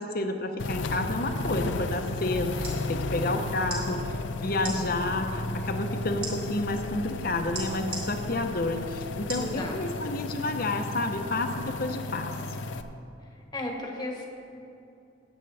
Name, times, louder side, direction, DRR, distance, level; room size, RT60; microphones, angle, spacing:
voice 1, 0.0-12.3, left 2 dB, 50° left, 6 dB, 0.8 m, -30 dB
sound 1, 0.6-12.8, left 2 dB, 75° left, 0.5 m, -34 dB
sound 2, 2.6-2.8 3.6-3.8 4.6-4.8 6.2-6.3 7.5-8.0 9.3-9.5 10.1-10.2, right 3 dB, 30° right, 2.9 m, -35 dB
voice 2, 9.3-9.8 13.5-14.2, left 1 dB, 20° left, 0 dB, 1.3 m, -34 dB
18.5 x 8.2 x 3.5 m, 2.7 s
head